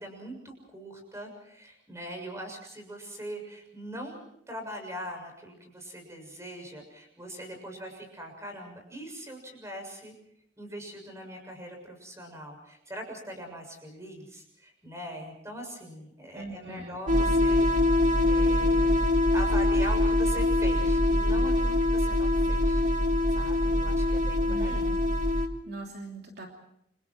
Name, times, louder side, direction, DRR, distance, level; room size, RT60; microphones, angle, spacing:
voice 1, 0.0-10.1 10.6-19.0 19.3-22.8 23.4-24.9, equal, 15° right, 4 dB, 6.9 m, -42 dB
voice 2, 16.3-17.2 24.5-25.0 25.6-26.5, right 2 dB, 60° right, 1 dB, 3.0 m, -41 dB
sound 1, 17.1-25.5, left 1 dB, 40° right, 2.2 m, -24 dB
29.5 x 26.5 x 4.6 m, 0.74 s
head